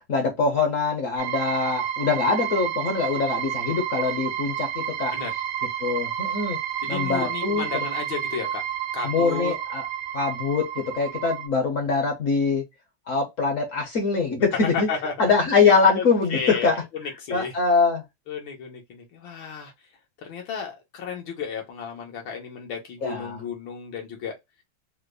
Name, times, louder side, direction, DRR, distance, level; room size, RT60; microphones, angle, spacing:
voice 1, 0.1-5.1 5.8-6.6 6.9-7.6 9.0-9.8 10.1-12.6 13.1-14.9 15.2-16.8 17.3-18.0 23.0-23.4, left 4 dB, 55° left, 1.0 m, -23 dB
sound 1, 1.2-11.5, right 10 dB, 70° right, 1.2 m, -30 dB
voice 2, 6.8-8.6 8.9-9.5 14.7-15.3 15.9-16.0 16.3-17.5 18.3-19.7 20.2-24.3, left 6 dB, 75° left, 1.7 m, -33 dB
4.9 x 2.0 x 2.4 m
omnidirectional pair, 2.1 m